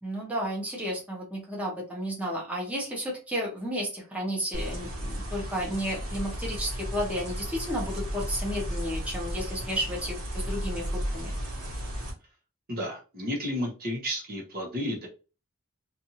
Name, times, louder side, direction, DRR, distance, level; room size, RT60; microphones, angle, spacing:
voice 1, 0.0-11.3, equal, 5° right, -3 dB, 0.9 m, -32 dB
sound 1, 4.5-12.1, equal, 75° right, 1.3 m, -34 dB
voice 2, 12.7-15.1, equal, 45° right, 0 dB, 0.9 m, -32 dB
2.6 x 2.5 x 2.8 m, 0.32 s
head